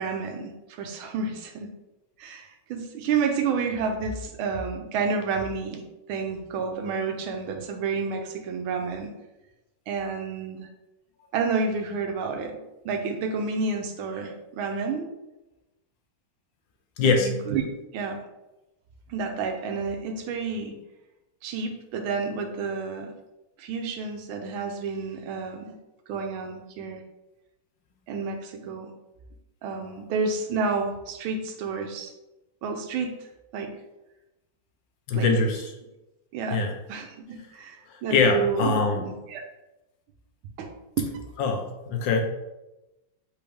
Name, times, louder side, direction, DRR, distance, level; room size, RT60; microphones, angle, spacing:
voice 1, 0.0-1.7 2.2-9.1 9.9-10.7 11.3-12.6 12.8-15.1 17.0-17.6 17.9-18.2 19.1-20.8 21.4-23.1 23.6-25.7 26.1-27.0 28.1-28.9 29.6-32.1 32.6-33.7 35.1-35.3 36.3-39.4 40.6-40.7 41.0-41.1, right 5 dB, 90° right, 4 dB, 1.5 m, -30 dB
voice 2, 17.0-17.3 35.1-35.7 36.5-36.7 37.9-39.0 41.4-42.2, left 4 dB, 75° left, 3 dB, 1.3 m, -23 dB
4.4 x 3.5 x 3.4 m, 0.98 s
omnidirectional pair, 2.2 m